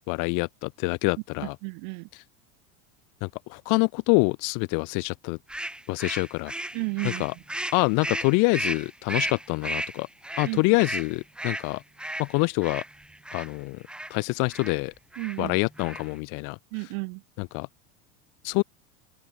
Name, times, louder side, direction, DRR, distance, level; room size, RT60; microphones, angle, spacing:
voice 1, 0.1-1.6 3.2-5.4 5.9-6.5 7.0-7.3 7.7-10.1 10.4-11.8 12.2-12.8 13.3-13.8 14.1-14.9 15.4-16.6 17.4-17.7 18.4-18.6, left 32 dB, 55° left, 0.7 m, -26 dB
voice 2, 1.4-2.1 6.7-7.2 10.4-10.6 15.2-15.6 16.7-17.2, right 40 dB or more, 65° right, 1.5 m, -32 dB
sound 1, 5.5-13.5 13.9-14.2 14.5-14.8 15.1-15.4 15.7-16.2, right 1 dB, ahead, 1.0 m, -34 dB
open air
supercardioid pair, 125°, 38 cm